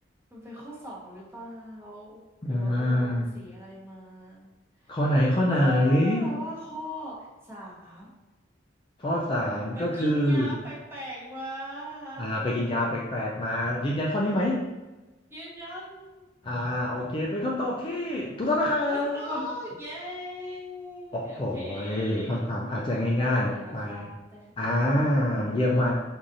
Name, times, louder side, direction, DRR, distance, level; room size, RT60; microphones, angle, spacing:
voice 1, 0.3-2.2 2.5-4.5 4.8-5.0 5.5-8.1 9.7-12.3 15.3-16.2 18.9-22.5 22.9-25.3, equal, 15° right, -6 dB, 0.9 m, -40 dB
voice 2, 2.4-3.3 4.9-6.3 9.0-10.5 12.2-14.6 16.4-19.4 21.1-24.1 24.6-25.9, left 1 dB, 25° left, -4 dB, 0.4 m, -26 dB
4.7 x 2.6 x 2.6 m, 1.1 s
head